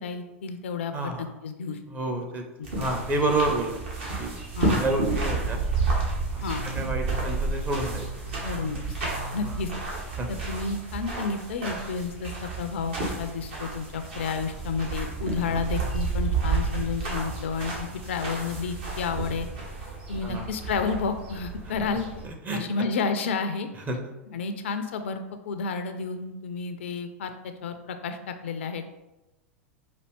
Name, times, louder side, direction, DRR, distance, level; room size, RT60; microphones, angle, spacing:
voice 1, 0.0-1.8 2.6-2.9 4.5-4.8 6.4-6.6 8.4-9.7 10.3-19.5 20.1-22.1 22.5-23.7 24.3-28.9, left 5 dB, 60° left, 8 dB, 0.4 m, -31 dB
voice 2, 0.9-1.3 1.9-2.4 2.7-4.4 4.6-5.6 6.3-6.4 6.7-8.1 9.4-9.6 10.2-10.3 20.2-20.4 22.5-22.6 23.9-24.0, right 2 dB, 25° right, 2 dB, 0.7 m, -29 dB
sound 1, 2.6-22.2, right 3 dB, 60° right, 1.2 m, -31 dB
5.1 x 2.7 x 3.1 m, 0.98 s
figure-of-eight pair, 85°, 7 cm